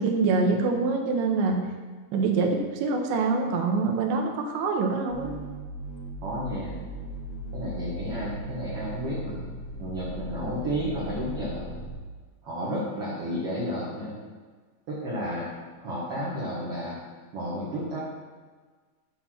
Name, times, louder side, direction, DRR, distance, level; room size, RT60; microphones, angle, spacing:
voice 1, 0.0-1.6 2.1-5.3, right 4 dB, 85° right, 3 dB, 3.2 m, -25 dB
sound 1, 5.1-12.0, right 1 dB, 85° left, 4.2 m, -38 dB
voice 2, 6.2-6.8 7.5-9.4 9.8-11.7 12.4-14.2 14.9-15.5 15.8-17.0 17.3-18.0, equal, 65° right, -7 dB, 1.5 m, -32 dB
9.8 x 4.3 x 5.8 m, 1.4 s
omnidirectional pair, 5.2 m